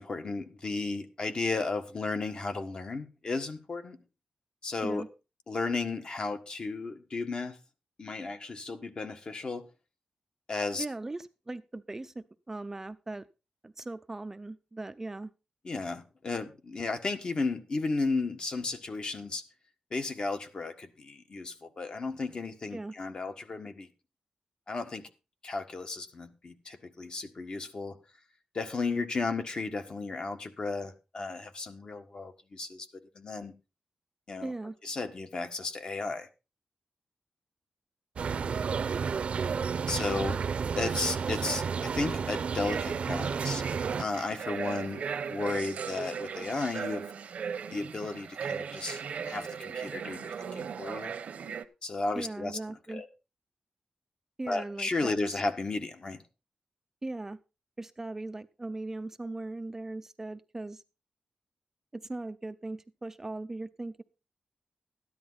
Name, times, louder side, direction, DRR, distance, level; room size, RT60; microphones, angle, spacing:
voice 1, 0.0-4.0 4.6-5.0 5.5-7.6 8.0-9.6 10.5-10.8 15.6-19.4 19.9-23.9 24.7-25.1 25.4-28.0 28.5-32.9 33.1-33.5 34.3-34.5 34.8-36.3 39.9-40.4 40.8-43.6 44.0-45.0 45.3-47.0 47.7-51.1 51.8-52.6 52.9-53.1 54.5-56.2, left 3 dB, 40° left, 1.5 m, -34 dB
voice 2, 10.8-13.2 13.6-15.3 22.7-22.9 34.4-34.8 52.1-53.0 54.4-55.4 57.0-57.4 57.8-60.8 61.9-64.0, right 2 dB, 20° right, 0.5 m, -39 dB
sound 1, 38.2-44.0, right 6 dB, 60° right, 0.8 m, -31 dB
sound 2, 42.6-51.6, right 6 dB, 85° right, 1.1 m, -37 dB
13.5 x 10.5 x 4.1 m
wide cardioid pair, 150°, 2 cm